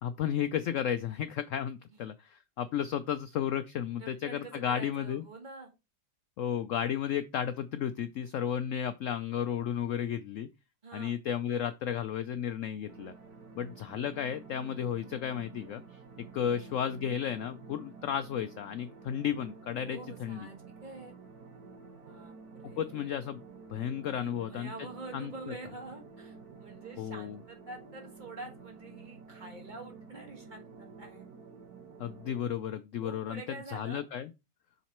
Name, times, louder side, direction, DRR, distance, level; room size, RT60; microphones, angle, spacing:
voice 1, 0.0-5.2 6.4-10.5 10.9-13.1 13.6-16.0 16.3-20.5 22.8-23.4 23.7-24.7 25.1-25.3 27.0-27.4 32.0-33.4 33.7-34.3, left 9 dB, 80° left, 0.7 m, -33 dB
voice 2, 4.0-5.7 10.8-11.2 13.9-14.0 15.0-15.2 16.5-16.8 19.7-21.1 22.0-23.1 24.2-31.3 33.0-34.0, right 3 dB, 25° right, 2.0 m, -47 dB
sound 1, 12.9-32.5, right 5 dB, 60° right, 1.7 m, -51 dB
7.2 x 4.0 x 4.3 m
omnidirectional pair, 1.9 m